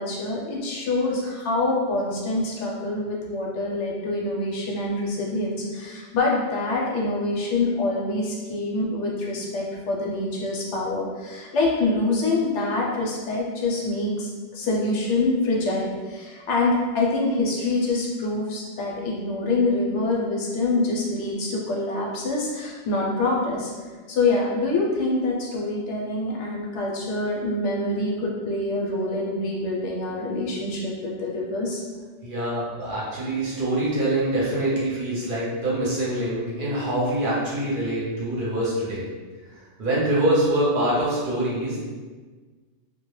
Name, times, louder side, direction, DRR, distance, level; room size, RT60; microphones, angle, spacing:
voice 1, 0.0-23.7 24.1-31.8, left 2 dB, 80° left, -3 dB, 0.9 m, -25 dB
voice 2, 32.2-39.0 39.8-41.8, right 1 dB, 55° right, -6 dB, 0.7 m, -24 dB
2.2 x 2.1 x 3.0 m, 1.4 s
omnidirectional pair, 1.2 m